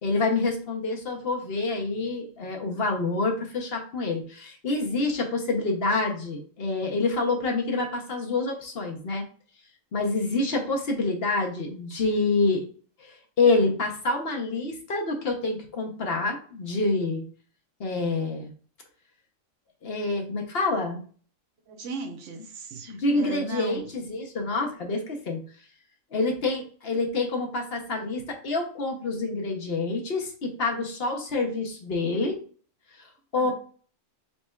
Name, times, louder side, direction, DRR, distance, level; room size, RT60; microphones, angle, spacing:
voice 1, 0.0-9.2 9.9-12.6 13.0-17.2 17.8-18.5 19.8-21.0 22.9-25.4 26.1-32.4 33.0-33.5, left 3 dB, 55° left, 1 dB, 1.0 m, -27 dB
voice 2, 21.7-23.9 33.3-33.5, right 3 dB, 70° right, 6 dB, 1.0 m, -37 dB
4.3 x 4.1 x 2.3 m, 0.42 s
omnidirectional pair, 1.3 m